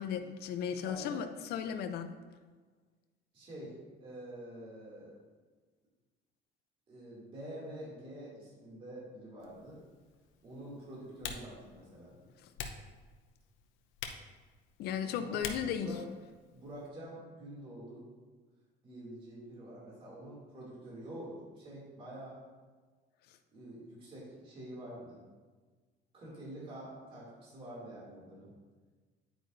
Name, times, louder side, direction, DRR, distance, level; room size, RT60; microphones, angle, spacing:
voice 1, 0.0-2.1 14.8-15.9, left 8 dB, 55° left, 8 dB, 0.7 m, -35 dB
voice 2, 0.8-1.2 3.3-3.7 4.0-5.1 6.9-9.8 10.4-12.2 15.1-15.4 15.7-16.0 16.5-18.0 18.8-22.4 23.5-25.2 26.1-28.5, right 1 dB, 30° right, -6 dB, 2.6 m, -47 dB
Typing, 9.4-16.9, left 6 dB, 80° left, 0.9 m, -48 dB
9.4 x 9.0 x 2.6 m, 1.4 s
cardioid pair, 175°, 20 cm